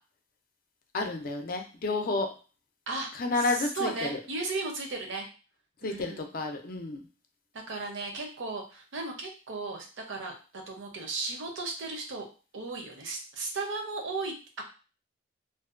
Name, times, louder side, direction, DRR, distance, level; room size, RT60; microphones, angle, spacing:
voice 1, 0.9-2.3 3.1-4.2 5.8-7.0, left 3 dB, 45° left, 4 dB, 0.4 m, -30 dB
voice 2, 3.4-5.3 5.8-6.3 7.7-12.3 12.5-14.6, right 3 dB, 75° right, 2 dB, 0.6 m, -35 dB
2.5 x 2.2 x 2.4 m, 0.35 s
head